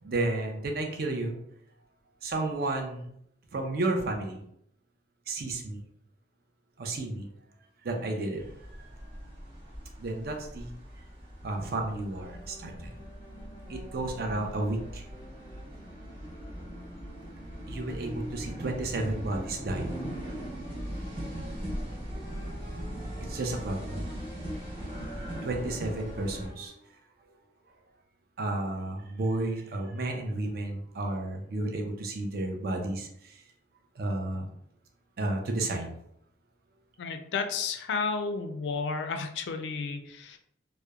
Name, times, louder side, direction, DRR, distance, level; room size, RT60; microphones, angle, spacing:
voice 1, 0.0-1.4 2.2-3.1 3.5-4.4 5.3-5.8 6.8-7.3 7.8-8.4 8.8-8.9 10.0-10.7 11.4-12.9 13.7-15.0 17.7-20.2 23.2-24.0 25.4-26.7 28.4-33.4 34.0-34.5 35.2-35.9, right 2 dB, 55° right, 3 dB, 0.4 m, -32 dB
sound 1, 8.4-26.5, equal, 30° right, 0.8 m, -40 dB
sound 2, 12.2-26.7, equal, 20° left, 0.5 m, -52 dB
voice 2, 37.0-40.4, left 4 dB, 70° left, 6 dB, 0.3 m, -32 dB
2.8 x 2.1 x 2.3 m, 0.72 s
head